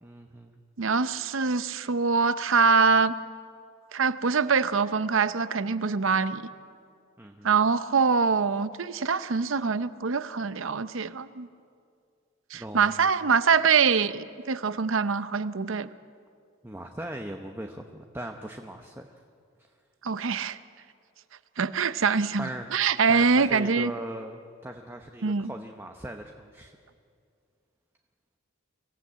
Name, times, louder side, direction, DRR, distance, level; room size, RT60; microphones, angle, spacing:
voice 1, 0.0-0.6 7.2-7.6 12.5-13.1 16.6-19.2 19.6-19.7 22.4-22.7 23.1-26.8, right 1 dB, 10° right, 4 dB, 0.8 m, -39 dB
voice 2, 0.8-3.1 3.9-6.4 7.4-11.5 12.5-15.9 20.0-20.6 21.6-23.9 25.2-25.5, right 5 dB, 70° right, 14 dB, 0.7 m, -24 dB
24.5 x 15.5 x 8.6 m, 2.3 s
head